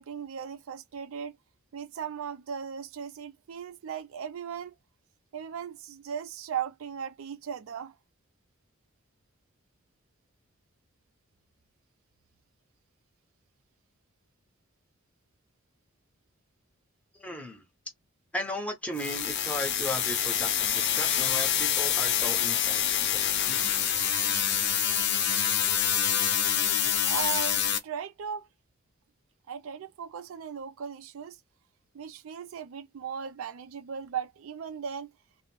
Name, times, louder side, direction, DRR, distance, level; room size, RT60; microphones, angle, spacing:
voice 1, 0.0-1.3 1.7-4.8 5.3-8.0 27.0-28.5 29.5-31.4 31.9-35.1, right 8 dB, 75° right, 0.4 m, -37 dB
voice 2, 17.1-17.6 18.3-24.1, left 1 dB, 5° left, 0.7 m, -36 dB
sound 1, 19.0-27.8, left 9 dB, 55° left, 0.5 m, -26 dB
2.5 x 2.0 x 2.9 m
head